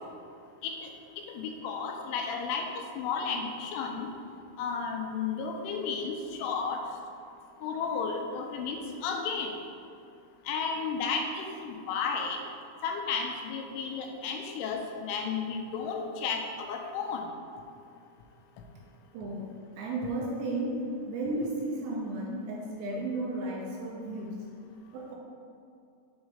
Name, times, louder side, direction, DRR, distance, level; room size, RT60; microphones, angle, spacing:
voice 1, 1.2-2.7 3.0-4.1 4.6-6.1 6.4-6.8 7.6-9.5 10.5-12.4 12.8-17.2, left 5 dB, 85° left, 3 dB, 3.1 m, -33 dB
voice 2, 19.1-19.5 19.8-24.5 24.9-25.1, right 2 dB, 80° right, -2 dB, 2.7 m, -34 dB
7.3 x 4.1 x 4.9 m, 2.5 s
omnidirectional pair, 5.5 m